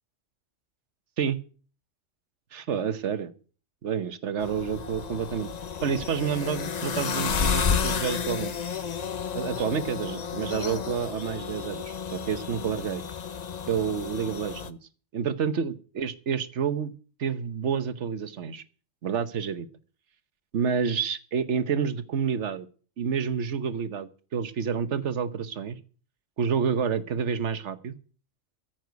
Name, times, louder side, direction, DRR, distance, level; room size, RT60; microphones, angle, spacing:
voice 1, 2.5-3.3 3.8-5.5 5.8-8.5 9.3-13.0 13.7-14.8 15.1-16.9 17.2-18.6 19.0-19.7 20.5-22.7 23.0-25.8 26.4-27.9, right 7 dB, 65° right, 12 dB, 1.3 m, -29 dB
sound 1, 4.4-14.7, left 6 dB, 40° left, 0.7 m, -31 dB
14.5 x 6.1 x 9.4 m, 0.41 s
omnidirectional pair, 1.3 m